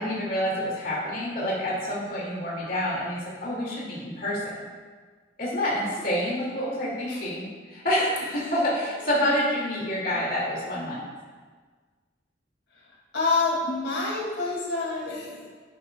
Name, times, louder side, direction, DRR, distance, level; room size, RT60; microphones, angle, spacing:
voice 1, 0.0-4.4 5.4-11.0, equal, 50° left, -6 dB, 2.2 m, -28 dB
voice 2, 13.1-15.5, left 3 dB, 80° left, -4 dB, 2.4 m, -27 dB
11.0 x 10.0 x 2.3 m, 1.5 s
head